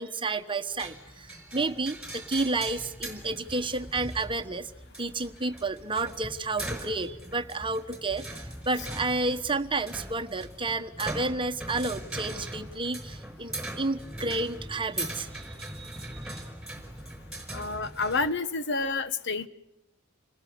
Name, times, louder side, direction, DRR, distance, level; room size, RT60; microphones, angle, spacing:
voice 1, 0.0-4.7 5.0-16.4, right 3 dB, 25° right, 9 dB, 1.3 m, -31 dB
sound 1, 0.8-18.3, right 1 dB, 5° right, 5.1 m, -40 dB
voice 2, 17.5-19.5, left 3 dB, 55° left, 12 dB, 1.3 m, -29 dB
29.0 x 20.0 x 9.7 m, 0.84 s
head